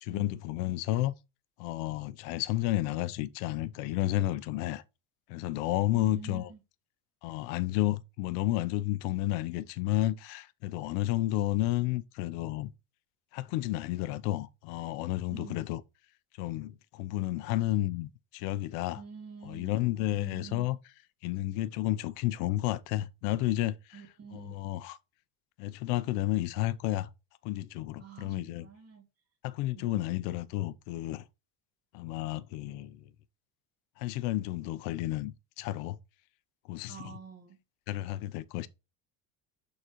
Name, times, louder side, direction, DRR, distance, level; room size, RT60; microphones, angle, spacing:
voice 1, 0.0-1.1 1.6-4.8 5.3-6.5 7.2-12.7 13.3-15.8 16.4-19.0 19.4-20.8 21.2-24.0 24.3-25.0 25.6-27.1 27.4-28.7 29.4-31.2 31.9-33.0 34.0-36.0 36.7-37.1 37.9-38.7, left 15 dB, 85° left, 0.8 m, -31 dB
voice 2, 5.9-6.6 15.3-15.6 18.9-19.7 20.1-20.7 23.9-24.6 28.0-29.0 29.7-30.0 36.9-37.6, right 6 dB, 35° right, 2.3 m, -47 dB
11.5 x 4.1 x 3.0 m
cardioid pair, 150°, 45 cm